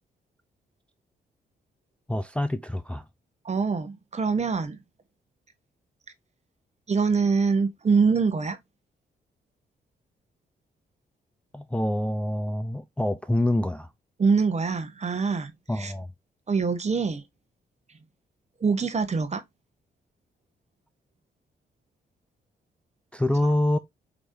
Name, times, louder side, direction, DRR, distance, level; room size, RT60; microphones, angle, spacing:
voice 1, 2.1-3.0 11.5-13.9 15.7-16.1 23.1-23.8, left 1 dB, 5° left, 0.4 m, -26 dB
voice 2, 3.4-4.8 6.9-8.6 14.2-15.5 15.8-15.9 16.5-17.2 18.6-19.4, right 5 dB, 35° right, 1.0 m, -24 dB
4.9 x 3.0 x 2.7 m
supercardioid pair, 60°, 19 cm